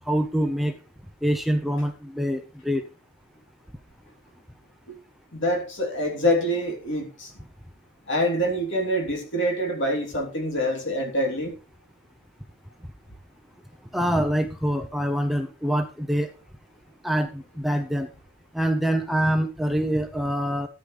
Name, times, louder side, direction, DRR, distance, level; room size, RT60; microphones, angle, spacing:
voice 1, 0.1-0.7 1.2-2.8 13.9-16.3 17.0-18.1 18.5-20.7, equal, ahead, 0.7 m, -25 dB
voice 2, 5.3-7.3 8.1-11.5, equal, 55° left, 3.4 m, -25 dB
14.0 x 9.7 x 3.4 m
head